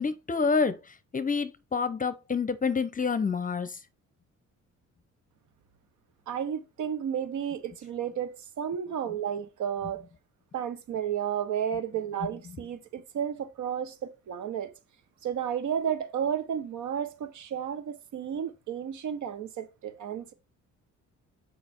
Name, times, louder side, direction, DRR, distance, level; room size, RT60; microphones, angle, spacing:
voice 1, 0.0-3.8, left 5 dB, 25° left, 0.7 m, -28 dB
voice 2, 6.3-10.0 10.5-14.7 15.2-20.3, right 8 dB, 75° right, 1.2 m, -32 dB
6.7 x 5.1 x 4.5 m
cardioid pair, 90°, 30 cm